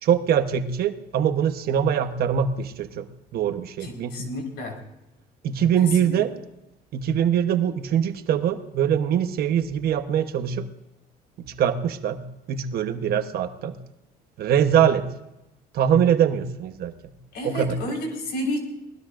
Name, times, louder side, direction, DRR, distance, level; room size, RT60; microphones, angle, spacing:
voice 1, 0.0-3.1 3.3-4.3 5.4-6.3 6.9-10.7 11.4-12.2 12.5-13.8 14.4-15.1 15.7-17.1 17.4-17.8, right 9 dB, 65° right, 8 dB, 1.1 m, -23 dB
voice 2, 3.8-4.8 5.8-6.2 17.3-18.6, left 1 dB, 75° left, 2 dB, 4.6 m, -31 dB
28.0 x 19.5 x 2.6 m, 0.92 s
cardioid pair, 110°, 17 cm